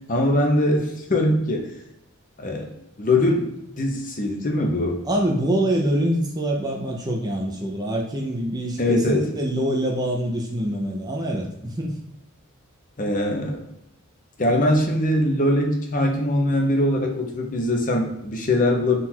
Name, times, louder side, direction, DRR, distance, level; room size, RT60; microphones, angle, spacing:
voice 1, 0.1-1.7 2.4-2.7 3.0-3.5 3.8-5.0 8.8-9.3 13.0-13.6 14.4-19.0, left 1 dB, 35° left, 1 dB, 0.7 m, -22 dB
voice 2, 5.0-12.0, right 1 dB, 20° right, 0 dB, 0.5 m, -25 dB
3.9 x 2.4 x 4.3 m, 0.85 s
head